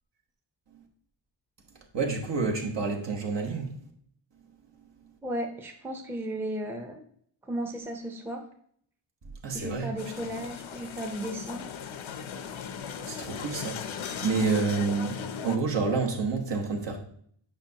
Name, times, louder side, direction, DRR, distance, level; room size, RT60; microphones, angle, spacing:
voice 1, 1.9-3.8 9.4-9.9 10.2-10.3 13.1-17.0, right 4 dB, 60° right, 1.3 m, -29 dB
voice 2, 5.2-7.0 7.4-8.5 9.5-11.7, right 1 dB, 5° right, 0.6 m, -35 dB
sound 1, 10.0-15.6, left 7 dB, 75° left, 0.7 m, -38 dB
8.7 x 5.4 x 2.8 m
wide cardioid pair, 145°, 47 cm